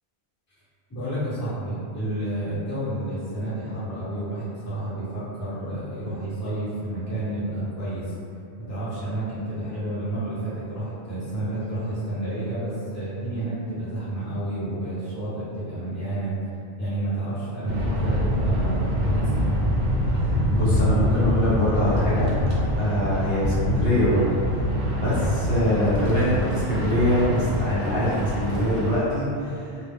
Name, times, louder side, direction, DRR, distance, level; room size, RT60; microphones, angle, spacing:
voice 1, 0.9-8.1 8.6-16.3 16.8-19.5, right 1 dB, 15° left, -12 dB, 0.8 m, -30 dB
sound 1, 17.7-29.0, equal, 65° right, 0.8 m, -24 dB
voice 2, 20.2-22.3 22.8-24.6 24.9-29.8, equal, 60° left, -10 dB, 0.9 m, -24 dB
2.3 x 2.0 x 3.5 m, 2.5 s
omnidirectional pair, 1.1 m